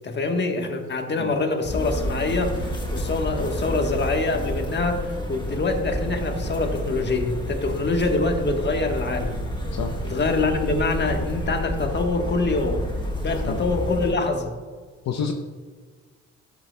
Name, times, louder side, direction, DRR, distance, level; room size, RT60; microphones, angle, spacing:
voice 1, 0.0-9.4 10.0-12.9 13.2-14.5, left 3 dB, 35° left, 4 dB, 1.2 m, -25 dB
voice 2, 1.2-1.3 9.7-9.9 13.3-13.6 15.0-15.3, left 7 dB, 60° left, 4 dB, 0.7 m, -29 dB
sound 1, 1.6-14.1, equal, 15° left, 1.5 m, -30 dB
13.5 x 7.2 x 2.2 m, 1.5 s
cardioid pair, 90°, 30 cm